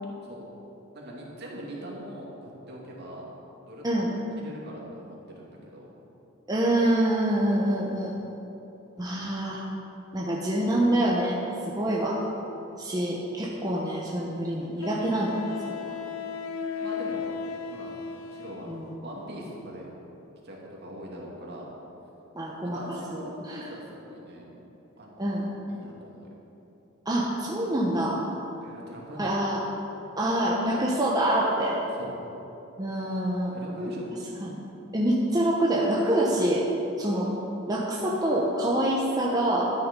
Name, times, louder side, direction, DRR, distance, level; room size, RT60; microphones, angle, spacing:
voice 1, 0.9-3.3 3.6-5.2 5.5-5.9 11.7-11.9 16.8-17.3 17.7-17.9 18.3-18.7 19.0-19.9 20.4-21.7 22.6-24.5 25.0-25.3 25.7-26.3 28.6-29.4 31.9-32.2 33.5-34.1, equal, 50° right, -3 dB, 2.5 m, -41 dB
voice 2, 6.5-8.1 9.0-9.6 10.1-11.4 11.6-12.2 12.8-15.4 15.8-16.0 18.7-18.8 22.3-23.7 25.2-25.5 27.0-28.2 29.2-29.6 30.1-31.8 32.8-33.5 34.4-34.6 34.9-36.6 37.0-37.3 37.7-39.7, right 1 dB, 20° right, -4 dB, 1.1 m, -26 dB
Wind instrument woodwind instrument, 13.5-13.6 14.8-18.9, left 6 dB, 90° left, 0.6 m, -35 dB
12.5 x 9.5 x 5.3 m, 3.0 s
head